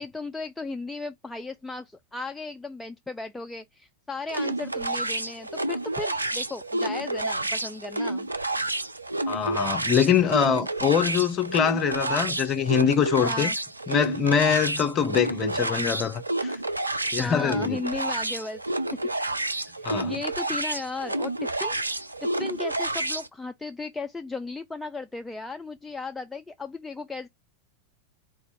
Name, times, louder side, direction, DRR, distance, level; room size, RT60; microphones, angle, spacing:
voice 1, 0.0-8.3 13.2-13.6 17.1-18.6 19.8-21.8 22.2-27.3, left 3 dB, 10° left, 0.3 m, -36 dB
sound 1, 4.3-23.3, right 2 dB, 85° right, 0.3 m, -29 dB
voice 2, 9.3-13.5 13.9-16.6 17.1-17.8 19.8-20.1, left 7 dB, 25° left, 0.7 m, -24 dB
4.1 x 2.4 x 4.6 m
figure-of-eight pair, 90°, 0 cm